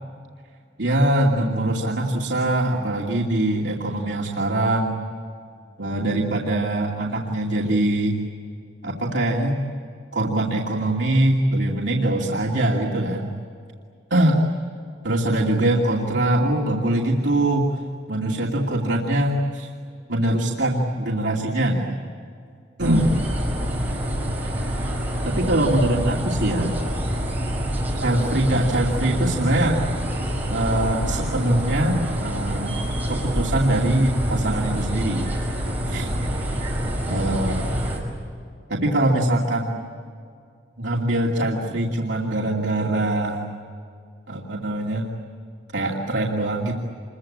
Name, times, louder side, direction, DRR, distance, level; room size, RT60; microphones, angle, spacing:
voice 1, 0.8-5.0 5.8-8.2 8.8-9.6 10.1-13.3 14.1-14.4 15.0-17.8 18.1-19.7 20.1-22.0 22.8-23.0 25.3-26.7 28.0-29.8 30.5-32.7 33.1-35.3 35.9-36.1 37.1-37.7 38.7-39.9 40.8-43.4 44.3-45.1 45.7-46.7, right 1 dB, 75° right, -3 dB, 2.6 m, -22 dB
sound 1, 22.8-38.0, equal, 10° right, 5.6 m, -26 dB
27.5 x 23.0 x 8.7 m, 2.3 s
head